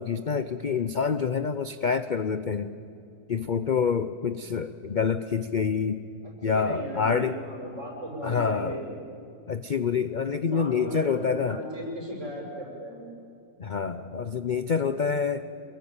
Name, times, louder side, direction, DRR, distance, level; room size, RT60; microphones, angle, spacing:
voice 1, 0.0-2.7 3.3-6.0 6.4-7.4 8.2-8.8 9.5-11.6 13.6-15.4, left 6 dB, 50° left, 12 dB, 0.5 m, -27 dB
voice 2, 6.4-8.9 10.2-13.1, equal, 50° right, -1 dB, 7.1 m, -36 dB
27.5 x 22.0 x 8.8 m, 2.5 s
omnidirectional pair, 1.7 m